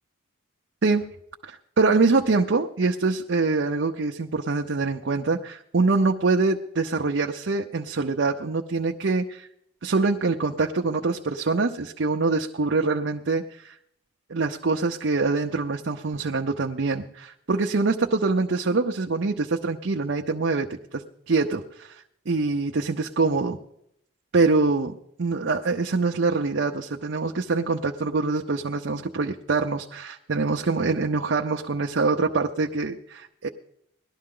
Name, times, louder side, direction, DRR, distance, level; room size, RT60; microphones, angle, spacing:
voice 1, 1.4-9.5 9.8-13.8 14.3-20.7 20.9-22.0 22.3-23.6 24.3-33.5, right 3 dB, 60° right, 2 dB, 0.6 m, -24 dB
18.5 x 12.0 x 3.8 m, 0.75 s
head